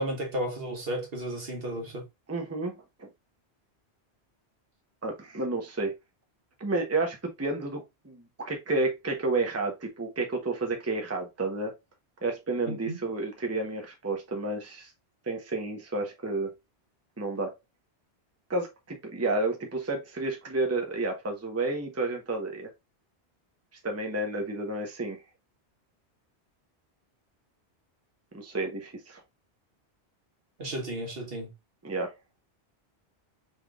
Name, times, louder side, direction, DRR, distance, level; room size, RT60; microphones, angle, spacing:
voice 1, 0.0-2.0 12.7-13.0 30.6-31.5, right 1 dB, 60° right, 1.5 m, -33 dB
voice 2, 2.3-3.1 5.0-5.9 6.6-11.7 12.2-14.9 15.2-16.5 17.2-17.5 18.5-22.7 23.8-25.2 28.3-29.2 31.8-32.1, right 2 dB, 15° right, 0.8 m, -31 dB
5.6 x 3.3 x 2.4 m
omnidirectional pair, 1.1 m